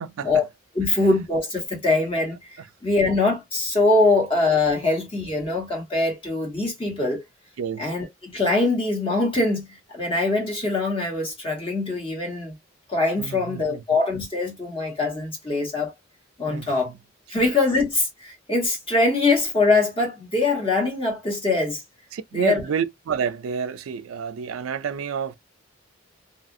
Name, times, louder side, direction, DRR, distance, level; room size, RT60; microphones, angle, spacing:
voice 1, 0.7-7.2 7.8-12.5 12.9-15.9 16.4-16.9 17.3-21.8 22.3-22.6, left 3 dB, 25° left, 1.1 m, -23 dB
voice 2, 7.6-7.9 13.2-13.8 16.5-17.0 17.3-17.4 22.1-25.3, right 7 dB, 90° right, 0.4 m, -29 dB
2.8 x 2.4 x 2.6 m
head